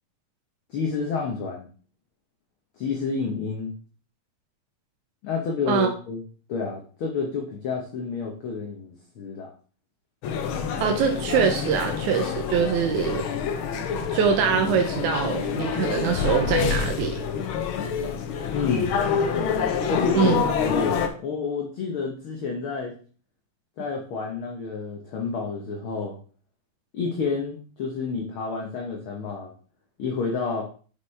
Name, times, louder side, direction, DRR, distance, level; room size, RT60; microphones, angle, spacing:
voice 1, 0.7-1.7 2.8-3.7 5.2-6.2 6.5-9.5 18.5-18.9 19.9-22.9 23.8-26.2 26.9-29.5 30.0-30.6, left 5 dB, 60° left, 0 dB, 1.6 m, -29 dB
sound 1, 10.2-21.1, left 6 dB, 80° left, 1.1 m, -27 dB
voice 2, 10.8-13.3 14.1-17.2 20.2-20.4, right 7 dB, 90° right, 4 dB, 2.2 m, -23 dB
9.5 x 5.1 x 3.3 m, 0.40 s
omnidirectional pair, 3.3 m